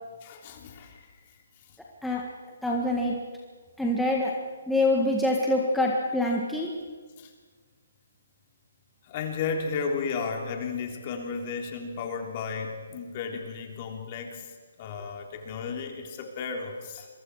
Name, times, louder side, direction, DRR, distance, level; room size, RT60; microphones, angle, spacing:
voice 1, 0.2-1.1 7.2-7.3 9.1-14.5 14.8-17.1, left 5 dB, 35° left, 2 dB, 3.5 m, -33 dB
voice 2, 2.6-3.2 3.8-4.3 4.7-6.7, left 1 dB, ahead, -3 dB, 1.7 m, -25 dB
27.5 x 23.0 x 4.9 m, 1.5 s
hypercardioid pair, 160°, 0 cm